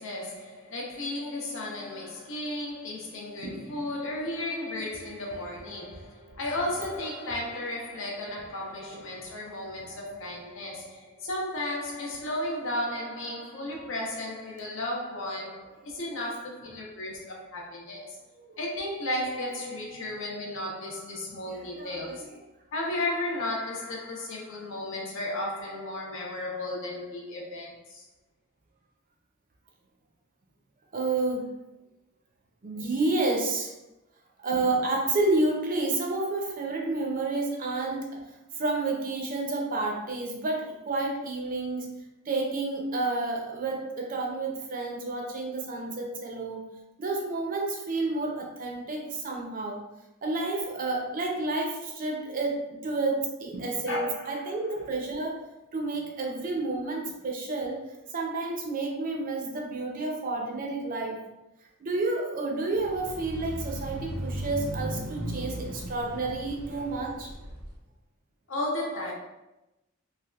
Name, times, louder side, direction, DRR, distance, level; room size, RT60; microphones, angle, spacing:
voice 1, 0.0-18.2 18.6-22.3 22.7-28.0 53.9-54.6 68.5-69.1, left 1 dB, 65° left, -2 dB, 0.7 m, -34 dB
voice 2, 3.4-3.8 18.4-18.6 21.5-22.4 30.9-31.5 32.6-33.7 34.4-38.2 38.5-41.9 42.3-46.6 47.0-49.8 50.2-55.4 55.7-57.8 58.1-61.2 61.8-67.3, right 2 dB, 40° right, 1 dB, 0.5 m, -30 dB
sound 1, 62.7-67.7, right 1 dB, 85° right, 0.7 m, -37 dB
3.3 x 2.3 x 2.3 m, 0.97 s
head